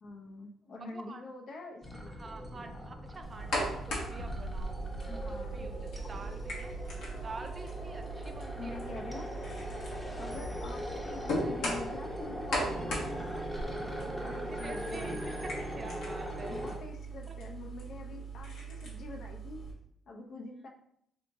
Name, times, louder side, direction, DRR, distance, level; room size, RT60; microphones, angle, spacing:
voice 1, 0.0-2.3 5.0-5.8 8.6-9.3 10.2-13.4 14.2-15.2 16.4-19.6 20.1-20.7, left 3 dB, 65° left, 1 dB, 0.7 m, -45 dB
voice 2, 0.8-1.2 2.2-4.8 5.1-6.7 7.1-8.7 10.1-10.3 13.8-15.2 15.4-16.6 17.3-17.4, right 3 dB, 35° right, 7 dB, 0.4 m, -47 dB
sound 1, 1.8-16.8, equal, 15° left, 0.8 m, -40 dB
sound 2, 3.2-19.7, right 1 dB, 85° left, 1.0 m, -39 dB
3.5 x 2.8 x 2.6 m, 0.70 s
cardioid pair, 90°, 0 cm